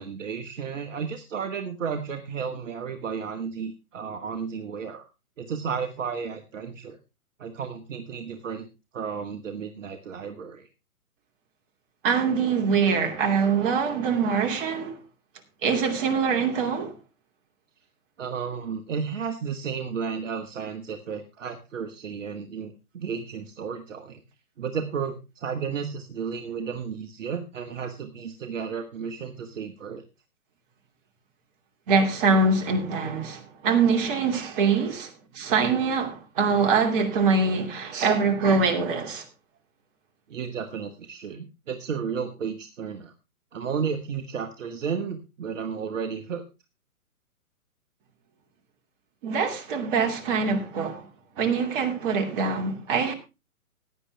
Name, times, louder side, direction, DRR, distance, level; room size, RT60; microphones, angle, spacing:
voice 1, 0.0-5.1 5.4-7.0 7.4-8.7 8.9-10.7 18.2-24.2 24.6-30.0 40.3-43.1 43.5-46.4, right 6 dB, 55° right, 1.7 m, -33 dB
voice 2, 12.0-15.0 15.6-16.9 31.9-39.2 49.2-51.1 51.4-53.1, right 5 dB, 35° right, 2.8 m, -24 dB
16.5 x 10.0 x 3.4 m
hypercardioid pair, 135°, 44 cm